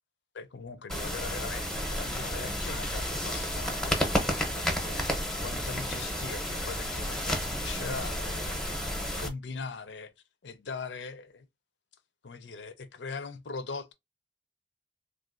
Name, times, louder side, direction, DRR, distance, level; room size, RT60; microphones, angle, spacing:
voice 1, 0.3-5.0 5.4-10.1 10.4-11.4 12.2-13.9, left 4 dB, 85° left, 0.5 m, -41 dB
sound 1, 0.9-9.3, equal, 5° left, 0.7 m, -31 dB
3.4 x 2.5 x 2.4 m
head